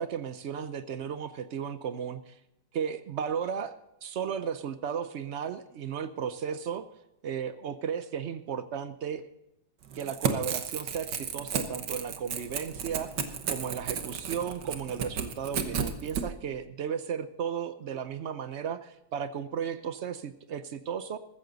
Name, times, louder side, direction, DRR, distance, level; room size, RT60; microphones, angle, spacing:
voice 1, 0.0-2.3 2.7-3.8 4.0-6.9 7.2-9.2 9.9-13.1 13.5-21.2, right 7 dB, 85° right, 11 dB, 0.6 m, -34 dB
Crackle / Tearing, 9.9-16.2, right 7 dB, 70° right, 1.8 m, -33 dB
14.5 x 14.0 x 4.0 m, 0.87 s
omnidirectional pair, 2.0 m